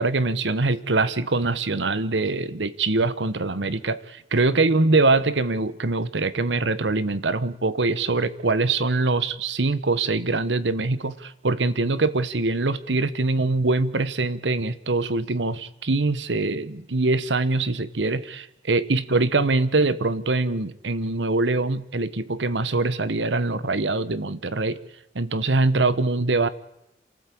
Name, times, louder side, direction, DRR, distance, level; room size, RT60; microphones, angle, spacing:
voice 1, 0.0-24.8 25.1-26.5, right 3 dB, 85° right, 16 dB, 1.1 m, -23 dB
28.0 x 13.5 x 8.6 m, 0.82 s
head